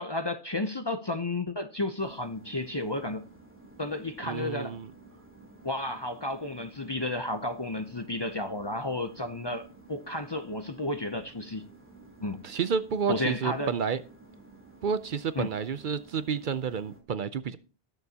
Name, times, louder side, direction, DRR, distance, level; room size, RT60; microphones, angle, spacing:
voice 1, 0.0-3.2 3.8-4.8 5.6-11.6 12.2-12.4 13.1-13.7 15.4-15.5, left 2 dB, 30° left, 0.5 m, -32 dB
sound 1, 2.0-17.0, right 2 dB, 10° right, 2.9 m, -53 dB
voice 2, 4.3-4.9 12.4-14.0 14.8-17.6, right 6 dB, 60° right, 0.7 m, -30 dB
19.0 x 6.9 x 2.8 m
omnidirectional pair, 1.0 m